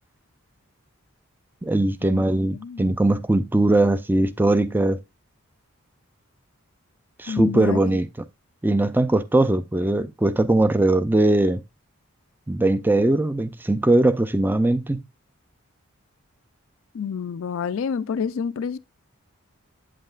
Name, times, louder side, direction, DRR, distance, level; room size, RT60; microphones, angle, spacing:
voice 1, 1.6-5.0 7.2-8.1 8.6-11.6 12.5-15.0, right 2 dB, 10° right, 0.4 m, -20 dB
voice 2, 2.5-2.9 7.3-8.0 16.9-18.8, left 6 dB, 70° left, 0.4 m, -28 dB
8.8 x 7.5 x 2.4 m
head